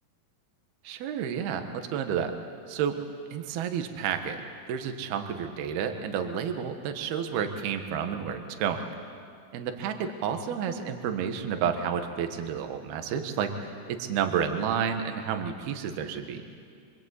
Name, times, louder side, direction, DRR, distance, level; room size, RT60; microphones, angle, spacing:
voice 1, 0.8-2.3 2.7-3.0 3.3-4.4 4.7-8.8 9.5-16.4, right 7 dB, 60° right, 6 dB, 3.0 m, -30 dB
26.5 x 24.5 x 8.4 m, 2.3 s
omnidirectional pair, 5.9 m